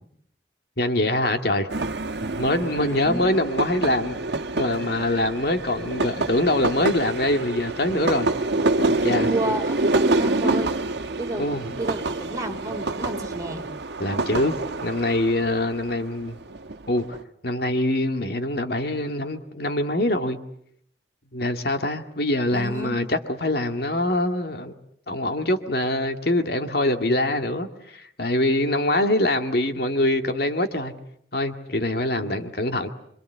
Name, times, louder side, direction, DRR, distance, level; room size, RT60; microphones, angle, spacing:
voice 1, 0.8-1.7 2.3-4.2 4.6-8.3 8.8-9.3 10.4-10.6 11.4-11.8 14.0-14.6 14.8-16.4 16.9-17.2 17.4-20.4 21.3-24.7 25.1-30.9 31.3-32.9, left 1 dB, 60° left, 2.1 m, -24 dB
sound 1, 1.7-17.2, right 2 dB, 80° right, 1.4 m, -27 dB
voice 2, 2.8-3.3 9.2-10.7 11.2-11.5 11.8-13.6 22.5-23.0, right 1 dB, 20° right, 4.8 m, -30 dB
27.0 x 25.5 x 8.2 m
head